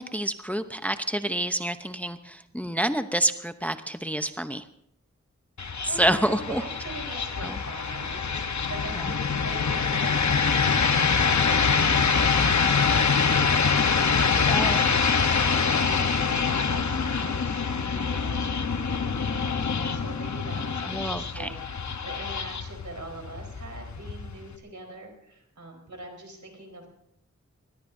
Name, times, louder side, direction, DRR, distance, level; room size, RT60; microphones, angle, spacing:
voice 1, 0.0-4.6 6.0-6.6 7.4-7.6 9.0-9.1 14.5-14.8 20.8-21.5, right 1 dB, 5° left, 9 dB, 0.8 m, -28 dB
sound 1, 5.6-24.5, left 5 dB, 75° left, 1.0 m, -25 dB
voice 2, 5.6-26.9, right 2 dB, 80° right, 1 dB, 4.3 m, -43 dB
22.5 x 20.0 x 2.7 m, 0.77 s
wide cardioid pair, 60°, 29 cm